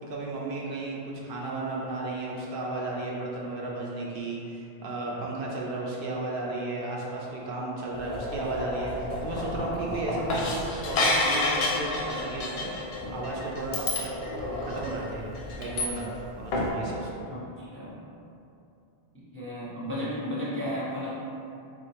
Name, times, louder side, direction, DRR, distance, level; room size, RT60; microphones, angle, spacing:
voice 1, 0.0-12.7 13.1-14.1 14.4-15.2 15.5-17.3, right 2 dB, 65° right, -4 dB, 0.7 m, -34 dB
sound 1, 7.9-16.3 16.5-16.7, left 2 dB, 90° left, 0.8 m, -30 dB
voice 2, 17.3-18.0 19.3-21.1, equal, 15° left, -9 dB, 0.5 m, -33 dB
3.4 x 2.7 x 2.7 m, 2.7 s
omnidirectional pair, 1.0 m